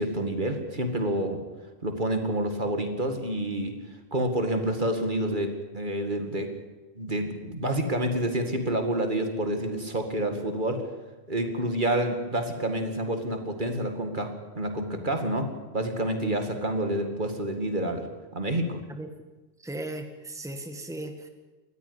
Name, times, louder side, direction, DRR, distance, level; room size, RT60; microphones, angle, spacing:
voice 1, 0.0-1.4 1.8-3.8 4.1-6.5 7.0-10.8 11.3-18.1 18.3-18.8, right 1 dB, 50° right, 6 dB, 2.4 m, -28 dB
voice 2, 19.6-21.3, right 1 dB, 5° right, 6 dB, 1.8 m, -37 dB
19.0 x 14.5 x 9.9 m, 1.2 s
omnidirectional pair, 1.1 m